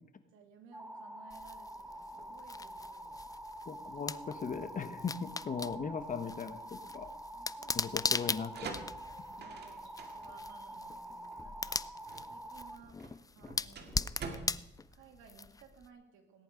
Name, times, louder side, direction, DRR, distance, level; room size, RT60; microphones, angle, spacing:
voice 1, 0.2-3.3 7.6-7.9 9.4-11.9 12.3-13.0 13.3-14.5 14.9-16.4, right 5 dB, 90° right, 4 dB, 2.5 m, -58 dB
sound 1, 0.7-12.8, right 1 dB, 5° right, 1.1 m, -47 dB
sound 2, 1.3-15.9, left 4 dB, 20° left, 0.4 m, -40 dB
voice 2, 3.6-6.6 6.9-7.1 7.7-8.8, left 6 dB, 40° left, 10 dB, 1.3 m, -38 dB
sound 3, 8.5-15.9, right 4 dB, 55° right, 2.1 m, -48 dB
17.5 x 10.5 x 5.2 m, 0.87 s
cardioid pair, 90°, 20 cm